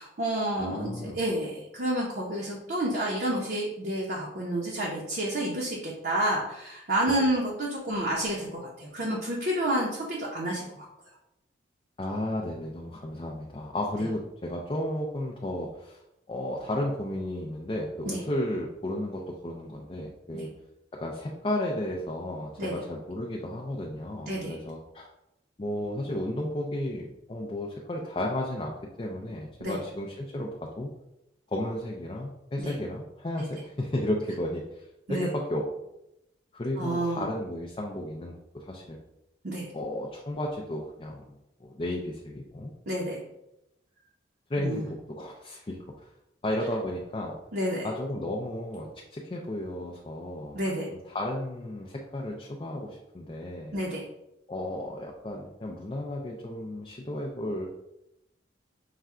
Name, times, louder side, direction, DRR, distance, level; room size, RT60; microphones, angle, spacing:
voice 1, 0.0-10.9 18.0-18.2 20.3-20.4 22.6-22.8 24.3-24.5 29.6-29.8 32.6-32.7 35.1-35.3 36.8-37.2 39.4-39.7 42.9-43.2 44.6-44.8 47.5-47.9 50.5-50.9 53.7-54.0, right 1 dB, 55° right, -4 dB, 0.7 m, -29 dB
voice 2, 0.6-1.2 7.1-7.2 12.0-16.0 16.3-20.5 20.9-25.1 25.6-30.9 31.5-35.7 36.5-39.0 39.7-41.4 41.6-42.7 44.5-46.1 46.4-47.4 47.8-50.6 50.9-53.8 54.5-57.7, left 1 dB, 25° left, -1 dB, 0.4 m, -33 dB
5.6 x 2.2 x 3.6 m, 0.87 s
head